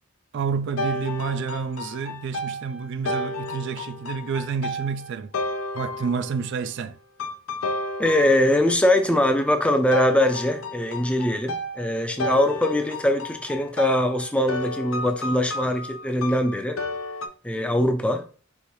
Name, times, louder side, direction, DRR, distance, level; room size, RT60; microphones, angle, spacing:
voice 1, 0.3-5.3 5.7-7.0, right 5 dB, 60° right, 0.3 m, -29 dB
sound 1, 0.8-6.5 7.2-8.8 9.9-17.3, left 1 dB, 85° left, 0.6 m, -32 dB
voice 2, 8.0-16.8 17.4-18.3, left 1 dB, 5° left, 0.5 m, -22 dB
4.7 x 3.1 x 3.0 m
head